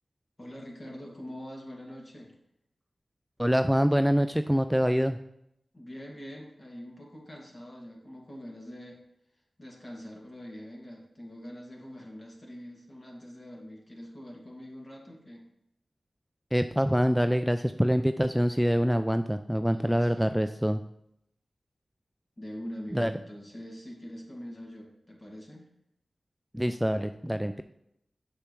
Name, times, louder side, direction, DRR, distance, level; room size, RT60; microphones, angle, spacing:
voice 1, 0.4-2.3 5.7-9.0 9.6-15.5 19.7-20.3 22.4-25.7, equal, 40° left, -1 dB, 2.1 m, -44 dB
voice 2, 3.4-5.2 16.5-20.8 22.9-23.1 26.5-27.6, equal, 5° right, 9 dB, 0.3 m, -25 dB
6.7 x 6.6 x 3.1 m, 0.78 s
cardioid pair, 40°, 0 cm